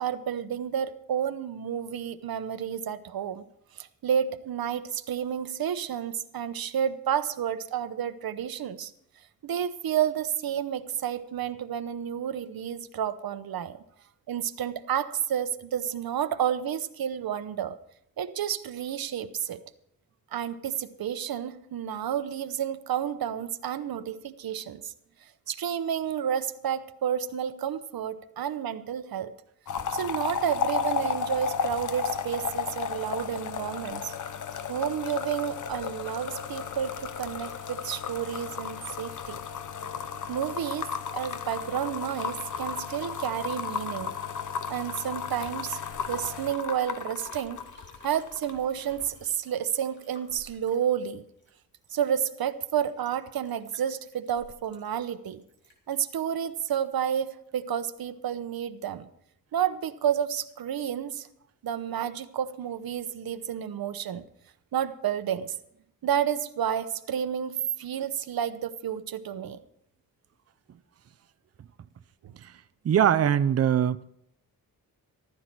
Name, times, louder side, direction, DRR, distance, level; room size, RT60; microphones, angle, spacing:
voice 1, 0.0-3.4 3.8-8.9 9.4-13.8 14.3-17.8 18.2-19.6 20.3-24.9 25.5-29.3 29.9-34.1 34.7-39.4 40.3-44.1 44.7-45.8 46.1-47.6 48.0-51.2 51.9-55.4 55.9-59.1 59.5-61.3 61.6-64.2 64.7-65.5 66.0-69.6 72.2-72.3, right 9 dB, 80° right, 0.9 m, -30 dB
sound 1, 29.7-48.6 48.9-49.2, left 7 dB, 55° left, 0.9 m, -34 dB
Liquid, 45.1-57.0 57.4-57.5, left 1 dB, 30° left, 3.0 m, -55 dB
voice 2, 72.8-74.0, right 9 dB, 45° right, 0.5 m, -22 dB
14.5 x 13.5 x 4.6 m
wide cardioid pair, 160°, 35 cm